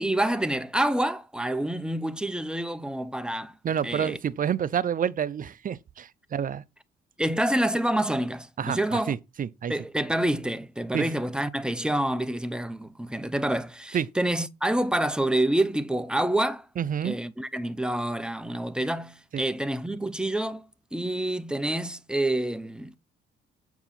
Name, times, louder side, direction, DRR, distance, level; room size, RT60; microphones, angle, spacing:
voice 1, 0.0-3.5 3.8-4.2 7.2-9.1 9.7-16.7 17.0-20.6 20.9-23.0, right 1 dB, 5° right, 0.9 m, -27 dB
voice 2, 3.6-6.6 8.6-9.7 10.9-11.1 13.9-14.1 16.8-17.1 19.3-19.4, right 8 dB, 45° right, 0.6 m, -28 dB
8.0 x 4.7 x 5.7 m
cardioid pair, 90°, 20 cm